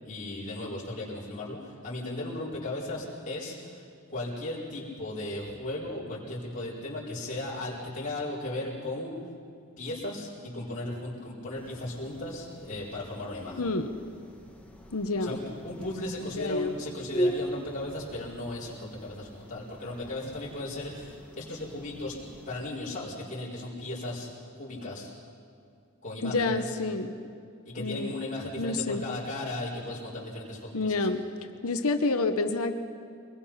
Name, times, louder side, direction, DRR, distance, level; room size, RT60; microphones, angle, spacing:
voice 1, 0.0-9.1 9.8-13.6 15.2-22.2 22.5-24.3 24.5-25.1 26.0-26.8 27.6-31.1, left 2 dB, 35° left, -7 dB, 4.4 m, -36 dB
sound 1, 11.5-22.7, equal, 5° left, 1.3 m, -39 dB
voice 2, 13.6-13.9 14.9-15.4 16.2-16.7 26.2-27.2 27.8-28.1 28.6-29.0 30.7-31.2 31.6-32.7, left 3 dB, 80° left, 7 dB, 1.1 m, -28 dB
24.0 x 20.5 x 5.8 m, 2.4 s
head